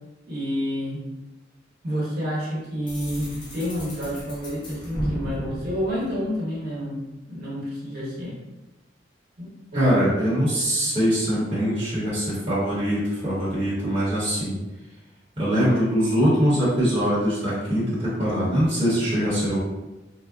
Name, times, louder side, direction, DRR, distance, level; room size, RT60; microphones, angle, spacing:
voice 1, 0.3-1.1 1.8-7.0 7.3-8.3 9.4-9.9, equal, 55° right, -7 dB, 1.2 m, -29 dB
sound 1, 2.9-6.7, equal, 25° left, 0.8 m, -34 dB
voice 2, 9.7-14.6 15.4-19.6, equal, 30° right, -10 dB, 1.0 m, -22 dB
3.6 x 2.1 x 2.3 m, 1.0 s
head